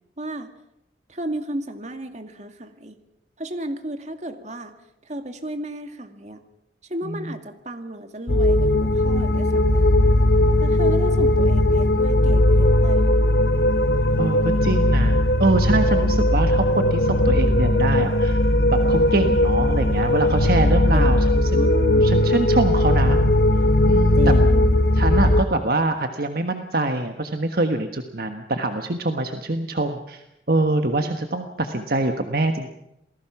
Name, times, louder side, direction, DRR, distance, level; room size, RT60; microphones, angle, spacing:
voice 1, 0.2-0.5 1.1-3.0 3.4-4.8 5.0-6.4 6.9-10.0 10.6-13.1 20.9-22.1 24.2-24.8, right 1 dB, 40° right, 7 dB, 2.2 m, -33 dB
sound 1, 8.3-25.4, left 1 dB, 65° left, 1.2 m, -18 dB
voice 2, 14.2-18.4 18.7-21.6 22.0-23.2 23.9-24.4 24.9-32.7, right 2 dB, 55° right, 6 dB, 1.4 m, -24 dB
28.0 x 19.0 x 5.9 m, 0.87 s
head